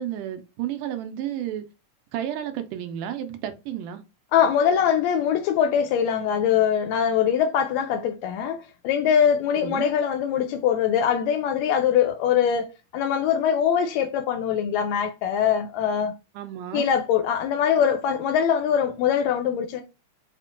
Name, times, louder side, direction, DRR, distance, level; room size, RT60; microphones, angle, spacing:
voice 1, 0.0-1.7 2.1-4.0 9.6-9.9 16.4-16.9, right 11 dB, 90° right, 2.2 m, -32 dB
voice 2, 4.3-12.7 12.9-16.1 16.7-19.8, left 8 dB, 85° left, 1.6 m, -22 dB
5.7 x 2.2 x 3.7 m
omnidirectional pair, 3.6 m